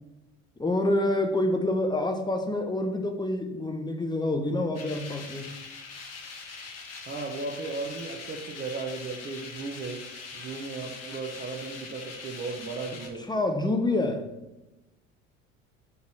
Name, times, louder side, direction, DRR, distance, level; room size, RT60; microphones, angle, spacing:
voice 1, 0.6-5.5 13.3-14.3, left 1 dB, 10° left, 5 dB, 0.9 m, -27 dB
sound 1, 4.7-13.1, left 4 dB, 45° left, 1.6 m, -42 dB
voice 2, 7.1-10.0 10.3-13.2, right 4 dB, 25° right, 1 dB, 1.0 m, -36 dB
5.2 x 4.8 x 6.1 m, 1.0 s
figure-of-eight pair, 60°, 37 cm